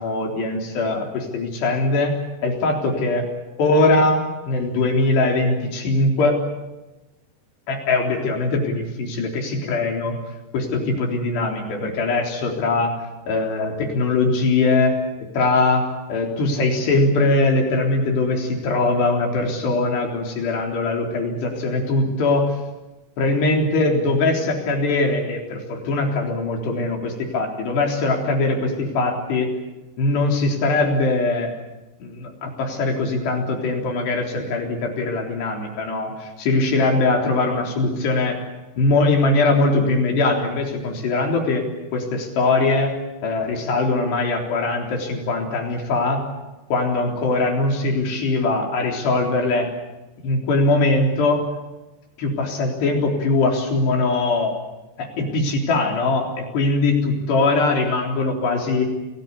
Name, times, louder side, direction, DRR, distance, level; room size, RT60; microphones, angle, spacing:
voice 1, 0.0-3.3 3.6-6.4 7.7-10.1 10.5-12.9 13.3-14.9 15.3-22.5 23.2-29.5 30.0-31.5 32.0-38.4 38.8-41.6 41.9-42.9 43.2-46.2 46.7-49.7 50.2-51.4 52.2-54.5 55.0-58.8, left 2 dB, 75° left, 1 dB, 5.9 m, -21 dB
29.5 x 19.5 x 8.5 m, 1.1 s
omnidirectional pair, 4.9 m